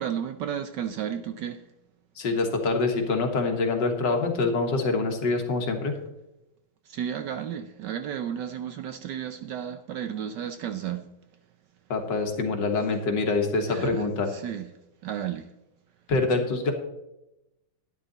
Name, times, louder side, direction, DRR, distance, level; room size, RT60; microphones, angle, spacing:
voice 1, 0.0-1.6 6.8-11.1 13.7-14.7 15.0-15.5, right 9 dB, 70° right, 1.1 m, -33 dB
voice 2, 2.2-5.9 11.9-14.3 16.1-16.7, left 3 dB, 60° left, 2.1 m, -25 dB
11.5 x 10.0 x 4.1 m
omnidirectional pair, 2.3 m